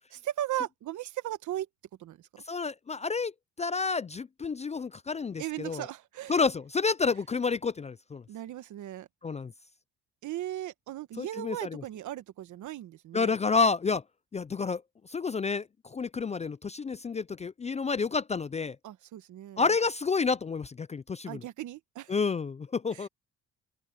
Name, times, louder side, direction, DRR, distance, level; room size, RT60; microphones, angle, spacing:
voice 1, 0.2-1.7 2.0-2.4 5.4-6.4 8.3-9.1 10.2-13.3 18.8-19.7 21.3-22.1 22.9-23.1, right 13 dB, 75° right, 1.2 m, -37 dB
voice 2, 2.5-3.3 3.6-5.9 6.3-8.2 9.2-9.5 11.2-11.8 13.1-14.0 14.3-14.8 15.1-18.8 19.6-21.4 22.1-23.1, left 4 dB, 25° left, 0.4 m, -29 dB
open air
cardioid pair, 90°, 30 cm